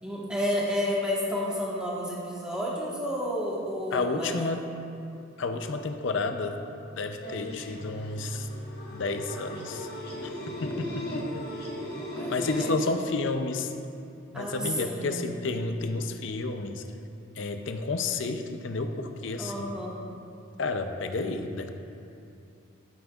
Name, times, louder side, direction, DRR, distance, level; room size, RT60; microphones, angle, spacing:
voice 1, 0.0-4.3 12.0-12.8 14.3-15.2 19.4-20.0, equal, 5° right, -6 dB, 1.3 m, -31 dB
voice 2, 3.9-4.7 5.4-6.6 6.9-8.5 8.9-9.9 10.2-11.4 12.3-13.7 14.3-16.8 17.4-19.7 20.6-21.7, left 3 dB, 65° left, 7 dB, 0.5 m, -31 dB
sound 1, 7.2-12.7, left 1 dB, 50° left, 1.3 m, -37 dB
12.5 x 8.7 x 2.4 m, 2.6 s
head